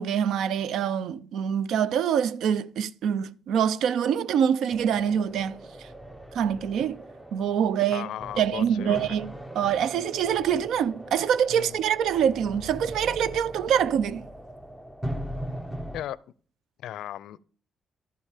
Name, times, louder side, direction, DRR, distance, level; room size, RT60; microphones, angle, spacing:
voice 1, 0.0-5.6 6.3-7.0 7.3-8.1 8.4-14.3, right 8 dB, 75° right, 0.4 m, -25 dB
sound 1, 4.7-16.0, right 1 dB, 5° right, 0.8 m, -40 dB
voice 2, 7.9-9.2 11.5-11.8 15.9-16.2 16.8-17.4, left 12 dB, 80° left, 0.4 m, -36 dB
11.5 x 5.3 x 4.9 m
cardioid pair, 90°, 0 cm